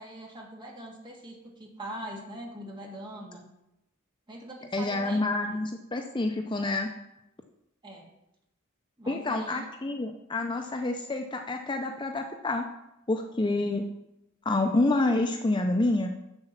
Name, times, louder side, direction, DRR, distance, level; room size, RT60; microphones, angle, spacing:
voice 1, 0.0-3.4 4.3-5.5 7.8-8.1 9.0-9.7, right 1 dB, 25° right, -1 dB, 1.8 m, -42 dB
voice 2, 4.7-6.9 9.1-12.7 13.1-13.8 14.5-16.1, left 2 dB, 25° left, 4 dB, 0.5 m, -28 dB
7.0 x 6.9 x 5.7 m, 0.88 s
head